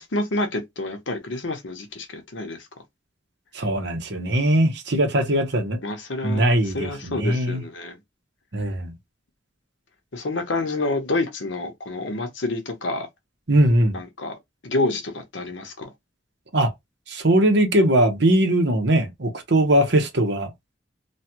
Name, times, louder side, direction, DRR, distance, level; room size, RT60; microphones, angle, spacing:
voice 1, 0.0-2.7 5.8-8.0 10.1-13.1 13.9-14.3 14.6-15.9, left 2 dB, 75° left, 1.0 m, -28 dB
voice 2, 3.5-5.8 6.2-7.6 8.5-8.9 13.5-14.0 16.5-16.7 17.1-20.5, right 1 dB, 65° right, 1.0 m, -20 dB
3.2 x 2.3 x 2.8 m
head